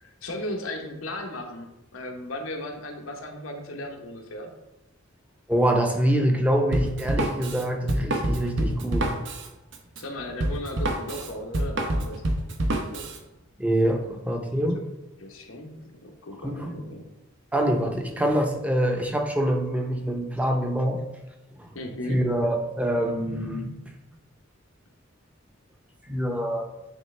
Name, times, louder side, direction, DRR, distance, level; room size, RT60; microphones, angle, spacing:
voice 1, 0.0-1.7 1.9-4.5 10.0-12.2 12.9-13.1 13.9-14.2 14.7-14.8 15.2-17.1 21.7-22.3, left 1 dB, 85° left, 3 dB, 1.0 m, -36 dB
voice 2, 5.5-9.1 13.6-14.8 16.4-16.8 17.5-21.0 21.5-21.7 22.1-23.7 26.1-26.7, right 1 dB, 5° right, 3 dB, 0.6 m, -25 dB
Drum kit, 6.7-13.2, right 1 dB, 60° right, 0.7 m, -27 dB
9.0 x 3.4 x 3.3 m, 0.96 s
head